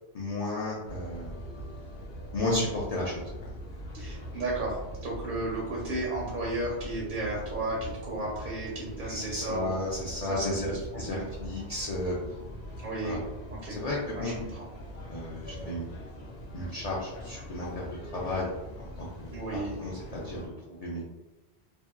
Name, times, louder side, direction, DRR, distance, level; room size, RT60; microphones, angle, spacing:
voice 1, 0.1-1.4 2.3-3.5 9.1-10.7 10.9-12.1 13.0-13.2 13.7-14.4 15.1-15.9 16.5-18.5 18.8-19.4 19.8-20.4 20.8-21.1, left 2 dB, 55° left, -5 dB, 0.4 m, -33 dB
sound 1, 0.8-20.5, equal, 85° left, 0.9 m, -42 dB
voice 2, 3.9-9.7 10.2-11.3 12.8-13.2 13.5-13.8 14.1-14.6 19.3-19.8, right 2 dB, 60° right, -4 dB, 0.7 m, -34 dB
2.6 x 2.2 x 2.3 m, 1.0 s
omnidirectional pair, 1.1 m